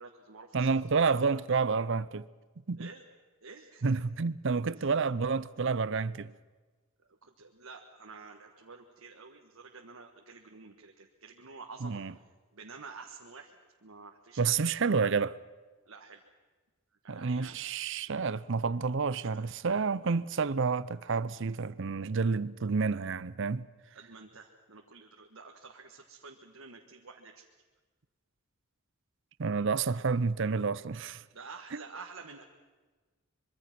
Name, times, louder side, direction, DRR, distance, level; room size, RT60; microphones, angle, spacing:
voice 1, 0.0-1.4 2.8-3.0 3.4-3.9 4.8-4.9 7.2-12.2 12.5-14.5 15.8-16.2 17.0-17.6 19.3-19.4 23.9-27.4 31.3-32.4, right 4 dB, 75° right, 1.5 m, -49 dB
voice 2, 0.5-2.3 2.7-2.9 3.8-6.3 11.8-12.1 14.4-15.4 17.1-23.7 29.4-31.2 31.7-31.8, right 5 dB, 55° right, 0.6 m, -29 dB
24.5 x 23.5 x 6.0 m
head